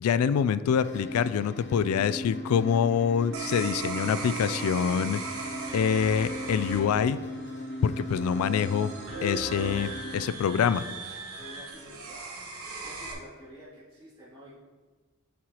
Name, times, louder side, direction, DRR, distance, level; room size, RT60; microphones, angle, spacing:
voice 1, 0.0-5.2 5.7-7.2 7.8-8.9 9.2-10.8, left 7 dB, 80° left, 15 dB, 0.3 m, -25 dB
sound 1, 0.8-10.2, equal, 50° left, 0.7 m, -38 dB
sound 2, 3.3-13.1, right 3 dB, 80° right, 1.2 m, -38 dB
voice 2, 11.4-12.5 12.8-14.6, equal, 15° right, -15 dB, 2.2 m, -49 dB
10.0 x 4.6 x 2.9 m, 1.4 s
head